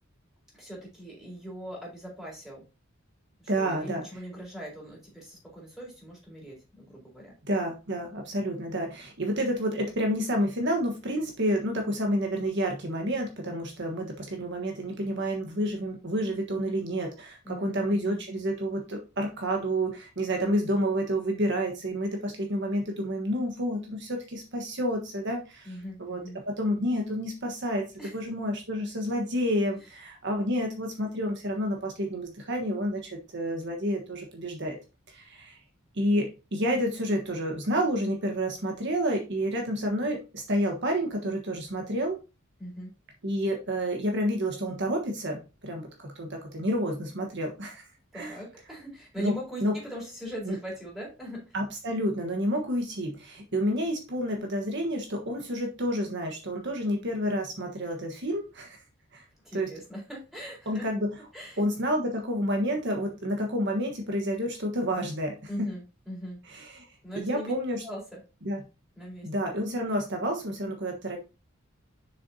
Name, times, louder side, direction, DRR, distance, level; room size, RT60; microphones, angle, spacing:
voice 1, 0.5-2.6 3.4-7.3 17.4-18.2 25.6-26.4 28.0-28.1 42.6-42.9 48.1-51.6 59.4-60.9 61.3-61.6 65.5-66.4 67.0-67.5 67.8-68.2 69.0-69.3, equal, ahead, -4 dB, 4.1 m, -40 dB
voice 2, 3.5-4.0 7.5-27.9 28.1-34.8 35.1-35.6 35.9-42.2 43.2-47.8 48.1-48.4 49.2-49.3 49.6-49.7 50.5-50.6 51.5-58.8 59.1-59.2 59.5-59.7 60.7-61.1 61.6-65.7 66.5-66.9 67.1-67.8 68.4-68.6 69.2-71.2, equal, 60° right, 2 dB, 1.4 m, -29 dB
7.0 x 6.8 x 2.8 m, 0.29 s
head